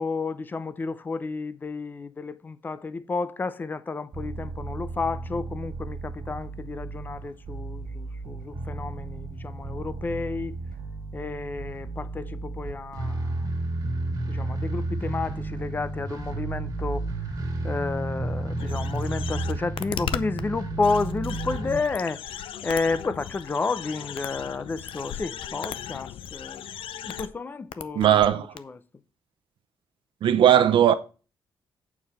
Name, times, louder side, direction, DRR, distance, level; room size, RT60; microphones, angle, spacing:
voice 1, 0.0-10.5 11.1-13.5 14.3-17.1 17.6-26.6 27.0-28.8, left 4 dB, 20° left, 0.5 m, -31 dB
sound 1, 4.1-21.8, right 2 dB, 45° right, 2.1 m, -32 dB
sound 2, 18.6-20.4 20.8-27.3 27.7-28.3 28.6-28.7, left 10 dB, 75° left, 0.6 m, -36 dB
voice 2, 27.9-28.5 30.2-30.9, right 10 dB, 65° right, 0.8 m, -18 dB
8.5 x 4.7 x 5.5 m
wide cardioid pair, 175°, 9 cm